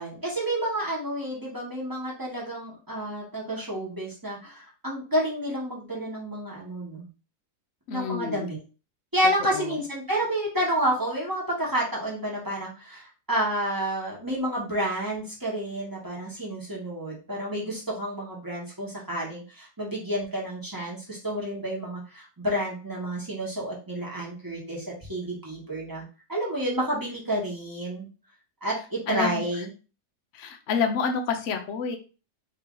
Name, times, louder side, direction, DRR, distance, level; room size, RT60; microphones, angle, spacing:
voice 1, 0.0-7.1 7.9-8.6 9.1-26.0 26.3-28.1 28.6-29.7, right 1 dB, 15° right, -4 dB, 1.2 m, -30 dB
voice 2, 7.9-8.5 9.5-9.8 29.1-29.5 30.3-32.0, left 6 dB, 60° left, 4 dB, 0.8 m, -28 dB
3.3 x 2.8 x 3.7 m, 0.34 s
omnidirectional pair, 1.7 m